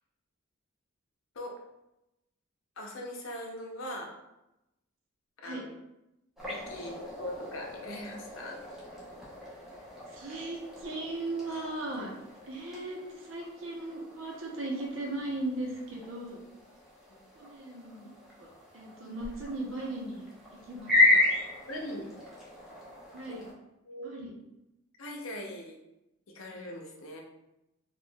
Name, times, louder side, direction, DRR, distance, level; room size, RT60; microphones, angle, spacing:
voice 1, 2.8-4.1 5.4-5.7 6.5-8.6 17.1-17.2 21.7-22.1 23.3-23.4 23.8-24.1 25.0-25.8 26.3-27.2, left 1 dB, 75° left, 0 dB, 0.6 m, -40 dB
sound 1, 6.4-23.5, left 2 dB, ahead, 0.8 m, -34 dB
voice 2, 10.1-12.1 12.5-16.4 17.3-18.1 18.4-21.3 23.1-23.5 24.0-24.3, right 2 dB, 70° right, -1 dB, 0.8 m, -38 dB
4.3 x 2.4 x 2.2 m, 0.91 s
head